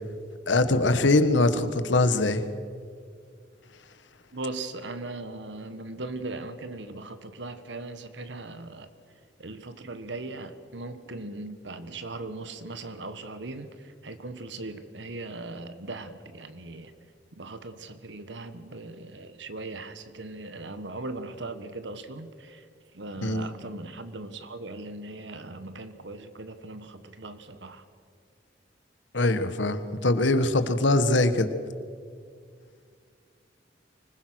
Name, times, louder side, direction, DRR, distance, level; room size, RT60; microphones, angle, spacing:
voice 1, 0.5-2.4 23.2-23.5 29.1-31.5, left 2 dB, 85° left, 10 dB, 1.4 m, -22 dB
voice 2, 4.3-8.9 9.4-16.9 17.4-22.7 22.9-27.8, right 2 dB, 70° right, 10 dB, 1.5 m, -39 dB
25.0 x 20.5 x 6.3 m, 2.2 s
head